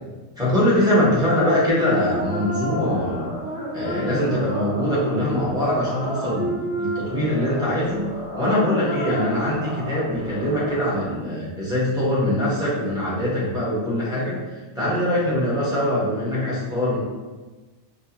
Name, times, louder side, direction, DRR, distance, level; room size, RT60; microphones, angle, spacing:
voice 1, 0.4-3.3 3.7-8.1 8.4-14.4 14.7-17.0, left 1 dB, 5° right, -8 dB, 1.1 m, -22 dB
sound 1, 1.7-11.0, right 1 dB, 70° right, 1.9 m, -31 dB
5.0 x 2.2 x 2.9 m, 1.2 s
omnidirectional pair, 1.4 m